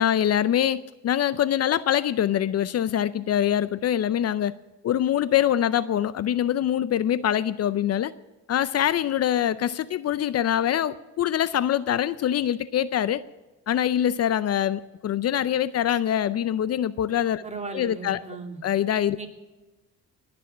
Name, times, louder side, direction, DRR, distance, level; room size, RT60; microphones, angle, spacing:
voice 1, 0.0-4.5 4.8-8.1 8.5-13.2 13.7-17.4 17.7-18.2 18.6-19.2, left 10 dB, 55° left, 16 dB, 0.6 m, -24 dB
voice 2, 17.4-18.6 19.2-19.3, right 4 dB, 25° right, 3 dB, 2.5 m, -36 dB
20.5 x 7.0 x 7.3 m, 1.2 s
cardioid pair, 90°, 30 cm